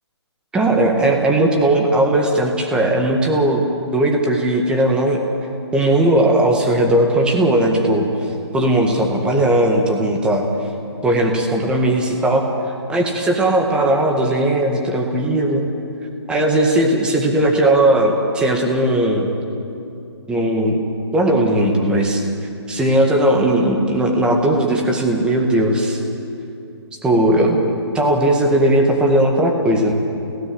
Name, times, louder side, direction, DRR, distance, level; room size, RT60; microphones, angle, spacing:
voice 1, 0.5-3.6 3.9-5.2 5.7-8.1 8.5-10.5 11.0-12.4 12.9-15.6 16.3-19.3 20.3-20.8 21.1-22.2 22.7-26.0 27.0-27.6 27.9-29.9, right 1 dB, 5° right, 1 dB, 1.9 m, -17 dB
29.0 x 17.0 x 8.0 m, 2.7 s
hypercardioid pair, 155°, 14 cm